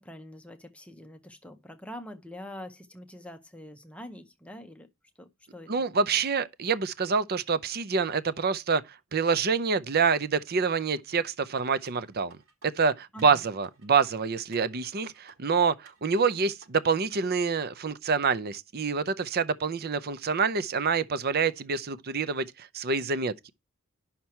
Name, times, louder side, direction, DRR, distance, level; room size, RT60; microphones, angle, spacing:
voice 1, 0.0-4.9 5.2-5.7 13.1-13.4, left 1 dB, 5° left, 0.7 m, -44 dB
voice 2, 5.7-8.8 9.1-12.4 12.8-23.5, right 5 dB, 45° right, 0.6 m, -27 dB
sound 1, 11.9-12.7 13.2-14.0 14.5-15.4 15.9-16.7 17.2-17.3, right 3 dB, 75° right, 4.5 m, -56 dB
11.0 x 5.9 x 4.3 m
head